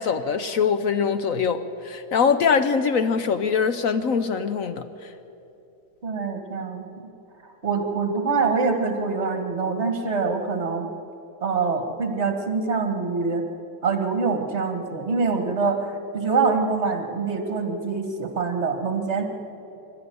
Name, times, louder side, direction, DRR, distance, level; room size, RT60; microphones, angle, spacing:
voice 1, 0.0-4.9, left 6 dB, 60° left, 10 dB, 0.9 m, -23 dB
voice 2, 6.0-7.1 7.6-10.9 11.4-13.5 13.8-19.2, right 4 dB, 35° right, 5 dB, 2.0 m, -25 dB
25.0 x 13.0 x 9.5 m, 3.0 s
omnidirectional pair, 2.1 m